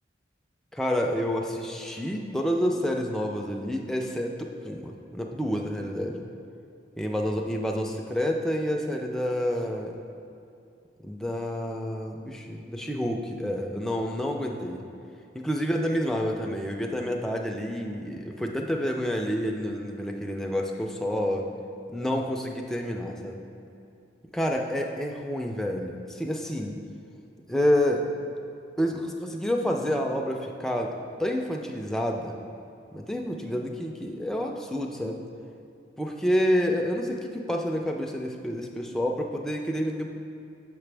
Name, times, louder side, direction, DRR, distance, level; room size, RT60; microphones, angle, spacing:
voice 1, 0.7-6.3 7.0-10.0 11.0-14.8 15.3-21.5 21.9-23.4 24.3-26.8 27.5-28.0 28.8-30.9 31.2-32.4 32.9-35.2 36.0-40.1, equal, ahead, 1 dB, 0.3 m, -28 dB
6.2 x 5.9 x 3.3 m, 2.6 s
head